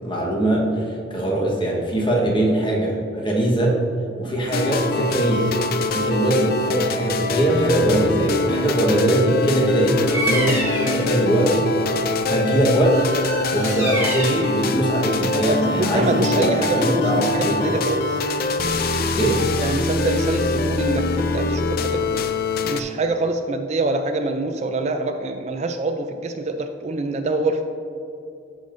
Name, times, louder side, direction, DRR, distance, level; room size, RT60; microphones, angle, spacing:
voice 1, 0.0-3.8 4.2-11.6 12.3-13.0 13.5-17.8 19.2-19.4, right 1 dB, 25° left, -2 dB, 1.2 m, -21 dB
sound 1, 4.5-22.8, left 3 dB, 50° left, 0.5 m, -24 dB
Bird vocalization bird call bird song, 10.1-11.0 12.9-14.5, right 1 dB, 15° right, 1.4 m, -27 dB
voice 2, 15.3-18.0 19.6-22.2 22.6-27.6, right 2 dB, 35° right, 6 dB, 0.4 m, -25 dB
13.0 x 5.2 x 2.6 m, 2.6 s
head